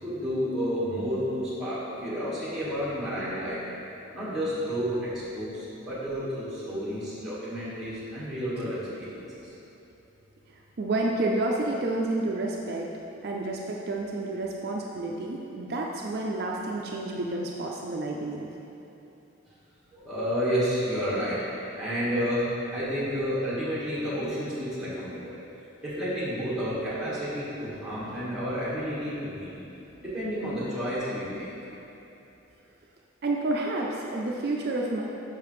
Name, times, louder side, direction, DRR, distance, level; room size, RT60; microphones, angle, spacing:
voice 1, 0.0-3.6 4.1-9.5 19.9-21.4 21.7-25.4 25.8-29.6 30.0-31.5, equal, ahead, -10 dB, 1.4 m, -30 dB
voice 2, 10.8-12.9 13.2-18.5 33.2-35.0, right 2 dB, 50° right, -1 dB, 0.4 m, -29 dB
6.7 x 5.6 x 3.1 m, 3.0 s
head